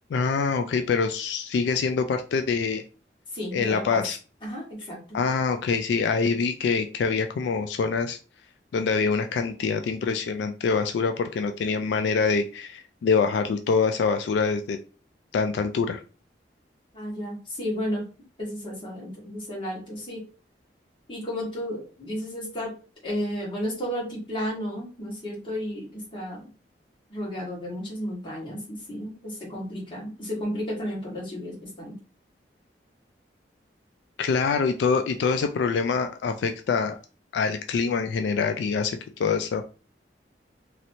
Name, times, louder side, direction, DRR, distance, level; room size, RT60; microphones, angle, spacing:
voice 1, 0.1-2.8 3.5-4.2 5.1-8.2 8.7-14.8 15.3-16.0 34.2-37.0 37.3-39.7, left 5 dB, 80° left, 7 dB, 0.3 m, -25 dB
voice 2, 3.3-4.0 4.4-5.2 16.9-18.0 18.4-20.2 21.1-22.7 23.0-26.5 27.1-31.9, equal, 30° left, -4 dB, 1.6 m, -33 dB
3.1 x 2.9 x 2.7 m, 0.36 s
head